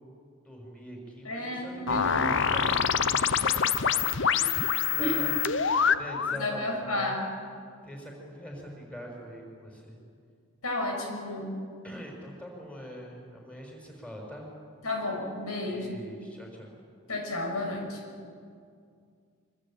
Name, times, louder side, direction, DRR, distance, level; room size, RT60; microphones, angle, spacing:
voice 1, 0.0-5.3 6.0-7.1 7.8-10.0 11.8-14.5 15.7-16.7, equal, 5° left, -1 dB, 6.0 m, -43 dB
voice 2, 1.2-2.3 5.0-5.2 6.3-7.2 10.6-11.5 14.8-15.9 17.1-18.0, left 1 dB, 90° left, 2 dB, 6.3 m, -32 dB
sound 1, 1.9-6.5, left 7 dB, 55° left, 0.8 m, -26 dB
25.5 x 25.0 x 9.0 m, 2.2 s
head